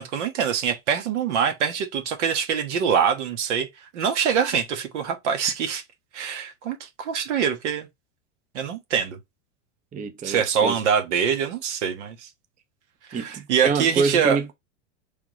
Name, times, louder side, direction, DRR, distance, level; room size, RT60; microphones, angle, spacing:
voice 1, 0.0-3.7 3.9-5.8 6.1-7.9 8.5-9.2 10.2-12.3 13.1-14.4, right 7 dB, 70° right, 1.3 m, -24 dB
voice 2, 9.9-10.8 13.1-14.5, right 5 dB, 20° right, 0.7 m, -26 dB
5.0 x 3.6 x 3.0 m
hypercardioid pair, 105°, 37 cm